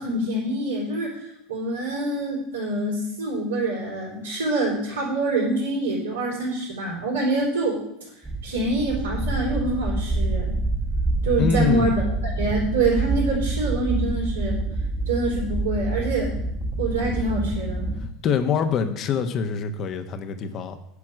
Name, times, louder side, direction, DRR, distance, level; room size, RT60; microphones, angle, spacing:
voice 1, 0.0-7.8 8.4-10.5 11.2-12.0 12.4-14.6 15.1-16.3 16.8-17.9, right 2 dB, 80° right, -7 dB, 4.0 m, -25 dB
sound 1, 8.2-18.1, right 2 dB, 15° right, 1.4 m, -27 dB
voice 2, 11.4-12.0 18.2-20.8, left 6 dB, 45° left, 7 dB, 1.2 m, -24 dB
9.8 x 6.0 x 7.8 m, 0.77 s
figure-of-eight pair, 75°, 0 cm